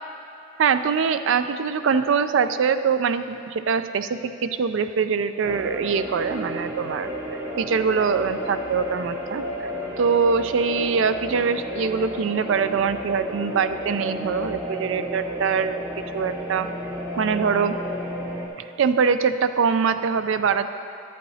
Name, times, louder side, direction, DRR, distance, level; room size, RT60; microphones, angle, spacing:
voice 1, 0.6-9.7 10.0-15.8 16.1-16.7 17.2-17.8 18.8-20.7, right 6 dB, 70° right, 10 dB, 0.4 m, -23 dB
sound 1, 5.4-18.5, equal, 15° right, 0.7 m, -32 dB
11.0 x 8.4 x 2.8 m, 2.8 s
head